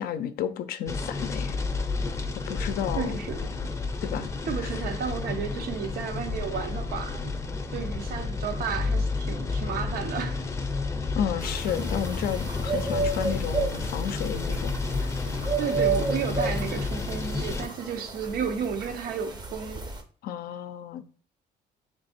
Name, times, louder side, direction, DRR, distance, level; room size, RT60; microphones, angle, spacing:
voice 1, 0.0-1.6 2.3-3.1 4.0-4.3 4.6-4.7 11.2-14.8 15.0-15.1 20.2-21.1, left 9 dB, 65° left, 0.5 m, -32 dB
sound 1, 0.9-17.7, left 3 dB, 15° left, 0.6 m, -31 dB
voice 2, 3.0-3.5 4.5-7.3 7.7-10.5 15.6-19.8, right 7 dB, 65° right, 0.7 m, -32 dB
sound 2, 11.4-20.0, right 4 dB, 25° right, 0.7 m, -32 dB
3.4 x 3.3 x 4.2 m
cardioid pair, 110°, 17 cm